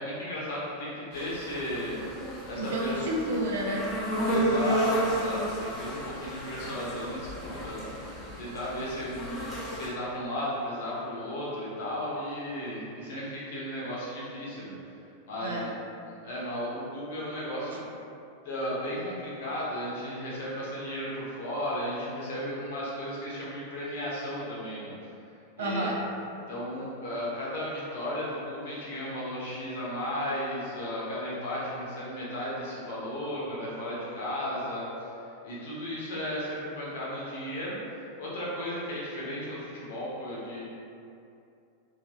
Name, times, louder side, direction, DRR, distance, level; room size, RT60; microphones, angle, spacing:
voice 1, 0.0-2.0 2.5-3.0 4.3-8.0 8.4-14.7 15.3-15.7 16.2-17.9 18.4-24.9 25.6-25.9 26.5-34.9 35.4-37.8 38.2-40.6, equal, 55° left, -7 dB, 0.9 m, -34 dB
sound 1, 1.1-9.9, right 1 dB, 15° left, 0.7 m, -32 dB
voice 2, 2.6-4.2 7.8-8.0 15.4-15.7 25.6-26.0, right 1 dB, 60° right, -2 dB, 0.4 m, -31 dB
3.0 x 2.7 x 2.3 m, 2.6 s
figure-of-eight pair, 90°, 0 cm